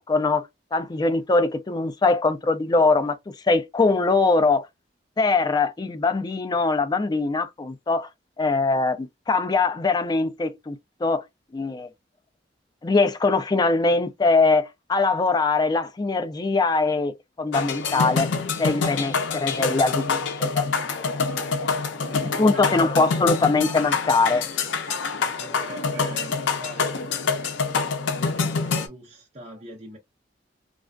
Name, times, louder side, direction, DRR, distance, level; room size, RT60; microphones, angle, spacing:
voice 1, 0.0-4.7 5.2-8.1 8.4-10.8 11.0-11.2 11.5-11.9 12.8-18.3 18.6-20.7 22.4-24.4, left 3 dB, 25° left, 0.3 m, -22 dB
sound 1, 17.5-28.9, left 5 dB, 90° left, 0.5 m, -26 dB
voice 2, 21.9-22.8 25.1-27.7 28.4-30.0, right 1 dB, 35° right, 0.7 m, -43 dB
2.3 x 2.2 x 2.4 m
head